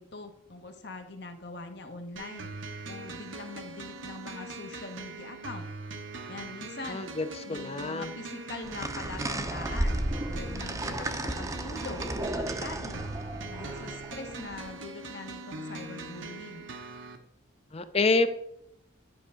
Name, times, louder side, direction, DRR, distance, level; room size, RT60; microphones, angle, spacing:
voice 1, 0.0-2.5 2.9-5.7 6.3-7.0 7.4-13.1 13.5-16.7, left 3 dB, 60° left, 6 dB, 1.2 m, -43 dB
sound 1, 2.2-17.2, right 3 dB, 80° right, 1.0 m, -42 dB
voice 2, 6.9-8.1 17.7-18.3, left 3 dB, 30° left, 11 dB, 0.6 m, -27 dB
sound 2, 8.6-14.7, right 1 dB, 15° right, 0.6 m, -34 dB
10.0 x 5.4 x 3.8 m, 0.76 s
head